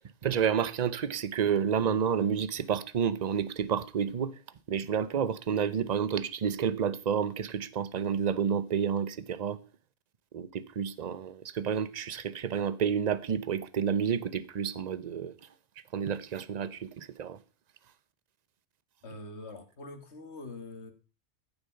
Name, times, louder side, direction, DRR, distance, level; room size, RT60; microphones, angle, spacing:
voice 1, 0.2-4.3 4.7-9.6 10.3-15.3 15.9-17.4, right 7 dB, 45° right, 0.8 m, -30 dB
voice 2, 19.0-20.9, left 2 dB, 85° left, 2.1 m, -44 dB
14.5 x 7.0 x 5.6 m
omnidirectional pair, 1.1 m